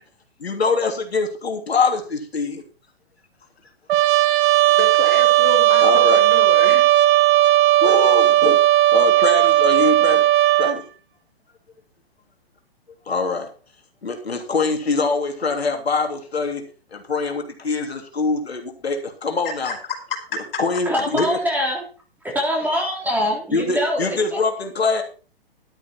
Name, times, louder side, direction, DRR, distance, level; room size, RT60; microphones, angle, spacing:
voice 1, 0.4-2.6 5.8-6.2 7.8-8.6 8.9-10.2 10.6-10.8 13.1-13.5 14.0-16.6 16.9-19.0 19.2-19.7 20.6-21.4 23.5-25.0, left 4 dB, 85° left, 4 dB, 3.2 m, -23 dB
Trumpet, 3.9-10.8, right 15 dB, 55° right, 1.4 m, -16 dB
voice 2, 4.8-6.8 19.6-19.7 20.1-20.4, left 5 dB, 65° left, 1 dB, 5.2 m, -29 dB
voice 3, 20.9-21.8 22.2-24.4, equal, 5° right, -1 dB, 3.6 m, -24 dB
12.5 x 9.7 x 4.5 m, 0.37 s
hypercardioid pair, 125°, 31 cm